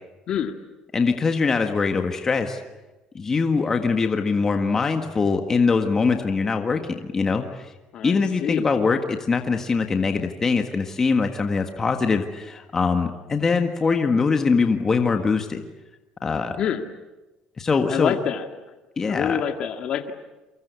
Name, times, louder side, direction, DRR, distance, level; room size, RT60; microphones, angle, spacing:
voice 1, 0.9-2.6 3.1-7.7 8.0-15.6 16.2-16.6 17.6-18.1 19.0-19.4, left 4 dB, 20° left, 5 dB, 1.6 m, -22 dB
voice 2, 7.9-8.7 16.6-16.8 17.9-18.4 19.0-20.1, left 8 dB, 45° left, 5 dB, 2.0 m, -26 dB
29.5 x 24.0 x 8.3 m, 1.1 s
cardioid pair, 145°, 2 cm